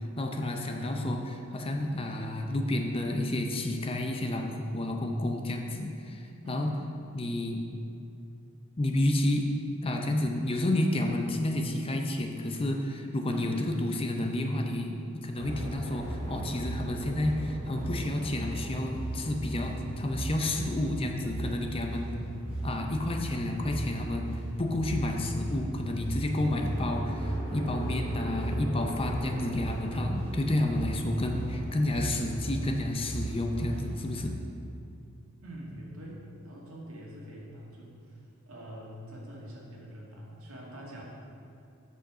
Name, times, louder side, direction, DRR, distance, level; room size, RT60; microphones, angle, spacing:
voice 1, 0.2-1.2 1.5-6.7 7.1-7.7 8.8-9.5 9.8-22.1 22.6-34.4, left 1 dB, 25° left, 3 dB, 0.6 m, -30 dB
voice 2, 0.7-1.1 6.4-6.9 13.3-13.7 16.2-16.5 23.2-23.5 25.4-25.6 35.4-41.0, right 1 dB, 70° right, -3 dB, 2.0 m, -45 dB
sound 1, 15.4-34.2, right 1 dB, 30° right, 2.4 m, -36 dB
8.1 x 6.4 x 6.2 m, 2.6 s
head